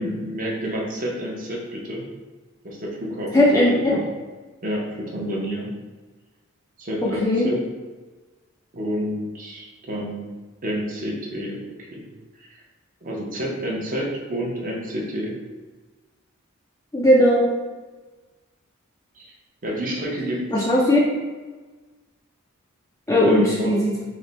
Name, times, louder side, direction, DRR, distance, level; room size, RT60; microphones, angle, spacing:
voice 1, 0.0-2.1 2.6-3.6 3.9-4.0 4.6-5.7 6.8-7.6 8.7-10.3 10.6-12.1 12.4-12.5 13.0-15.3 19.2-19.3 19.6-20.4 23.2-24.0, equal, 40° right, -3 dB, 0.7 m, -29 dB
voice 2, 3.3-3.9 7.0-7.5 16.9-17.5 20.5-21.0 23.1-24.0, left 1 dB, 15° left, -6 dB, 0.4 m, -18 dB
3.2 x 2.1 x 3.9 m, 1.3 s
head